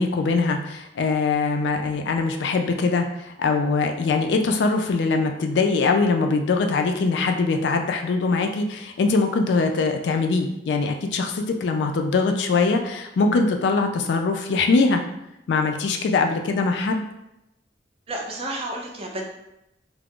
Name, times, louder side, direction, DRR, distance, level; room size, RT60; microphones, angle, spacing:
voice 1, 0.0-15.0 15.5-17.0, left 4 dB, 65° left, 5 dB, 0.3 m, -22 dB
voice 2, 18.1-19.3, right 1 dB, 30° right, 0 dB, 0.4 m, -31 dB
2.3 x 2.0 x 3.5 m, 0.86 s
head